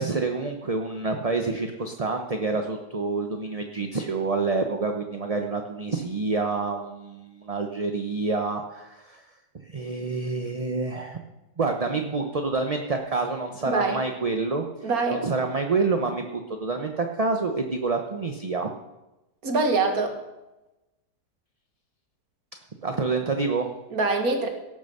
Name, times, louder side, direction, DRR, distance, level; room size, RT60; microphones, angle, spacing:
voice 1, 0.0-9.2 9.6-11.2 11.6-18.7 22.8-23.7, right 3 dB, 30° right, 4 dB, 0.8 m, -27 dB
voice 2, 13.7-14.0 14.8-15.2 19.4-20.2 23.9-24.5, right 3 dB, 65° right, 4 dB, 2.2 m, -24 dB
17.5 x 7.2 x 6.8 m, 1.0 s
omnidirectional pair, 1.7 m